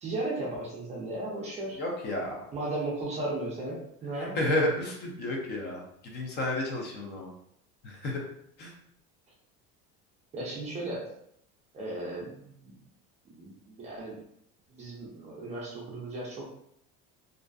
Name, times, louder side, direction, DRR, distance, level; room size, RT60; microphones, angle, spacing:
voice 1, 0.0-1.8 2.5-4.4 10.3-11.1 11.7-12.8 13.2-14.2 14.7-16.4, right 2 dB, 25° right, -4 dB, 0.4 m, -36 dB
voice 2, 1.8-2.3 4.2-5.8 6.1-7.3 7.8-8.2 8.6-8.7, left 1 dB, 35° left, -1 dB, 0.4 m, -31 dB
2.5 x 2.4 x 2.3 m, 0.71 s
cardioid pair, 175°, 30 cm